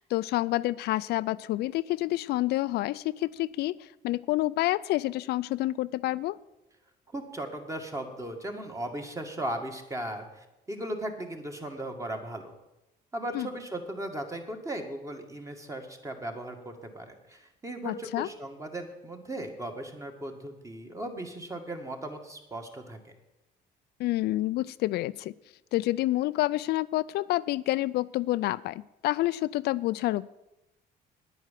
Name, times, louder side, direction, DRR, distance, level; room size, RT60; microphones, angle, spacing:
voice 1, 0.0-3.8 4.0-6.4 13.3-13.5 17.9-18.3 24.0-25.3 25.7-30.3, left 17 dB, 75° left, 16 dB, 0.4 m, -28 dB
voice 2, 7.1-12.5 13.1-23.1, right 1 dB, 20° right, 4 dB, 2.0 m, -37 dB
9.9 x 9.2 x 7.5 m, 0.97 s
cardioid pair, 110°, 17 cm